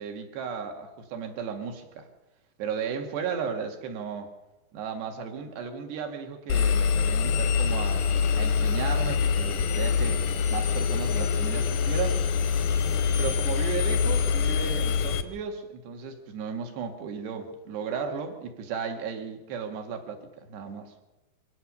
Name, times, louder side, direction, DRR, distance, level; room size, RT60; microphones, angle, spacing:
voice 1, 0.0-2.1 2.6-4.3 4.7-8.0 8.3-10.2 10.5-12.2 13.2-20.9, right 6 dB, 65° right, 4 dB, 4.0 m, -35 dB
Engine, 6.5-15.2, left 6 dB, 75° left, 1.9 m, -25 dB
24.0 x 16.5 x 6.9 m, 1.0 s
omnidirectional pair, 5.4 m